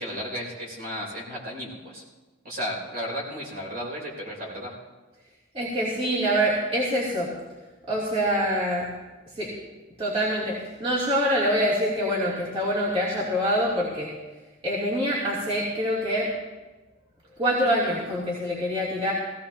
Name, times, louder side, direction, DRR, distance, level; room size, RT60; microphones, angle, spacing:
voice 1, 0.0-2.0 2.4-4.7, equal, 45° right, -2 dB, 3.4 m, -34 dB
voice 2, 5.5-7.3 7.9-8.9 9.3-9.5 10.0-14.1 14.6-16.3 17.4-19.1, equal, 25° right, -8 dB, 2.8 m, -25 dB
17.0 x 17.0 x 2.8 m, 1.2 s
head